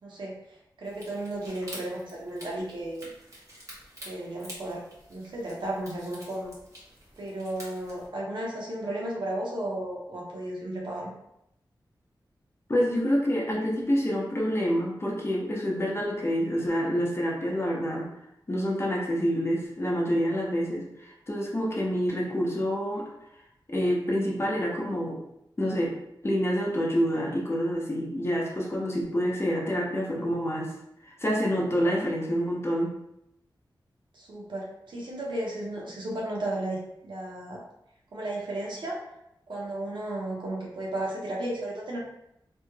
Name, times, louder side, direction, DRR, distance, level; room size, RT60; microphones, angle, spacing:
voice 1, 0.0-3.1 4.0-4.8 5.1-6.5 7.2-11.1 31.8-32.1 34.1-37.6 38.1-39.0 39.5-42.0, right 1 dB, 75° right, -3 dB, 0.9 m, -34 dB
sound 1, 0.8-8.1, equal, 40° right, 1.2 m, -48 dB
voice 2, 12.7-18.1 18.5-23.1 23.7-25.2 25.6-26.0 26.2-30.7 31.0-32.9, equal, 30° left, -2 dB, 0.7 m, -27 dB
3.2 x 3.1 x 2.2 m, 0.80 s
wide cardioid pair, 90°, 8 cm